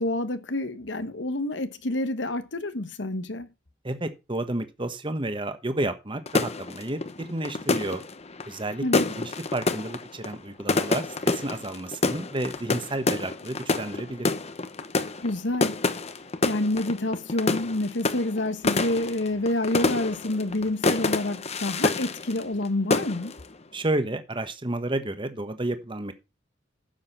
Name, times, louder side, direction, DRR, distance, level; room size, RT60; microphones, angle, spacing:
voice 1, 0.0-3.5 8.8-9.1 15.2-15.8 16.4-23.3, left 1 dB, 90° left, 1.3 m, -28 dB
voice 2, 3.8-8.0 8.5-8.8 9.2-14.3 23.7-26.1, right 1 dB, 30° right, 1.3 m, -31 dB
sound 1, 6.3-22.7 22.9-23.5, left 3 dB, 35° left, 1.0 m, -28 dB
10.5 x 7.3 x 5.7 m
head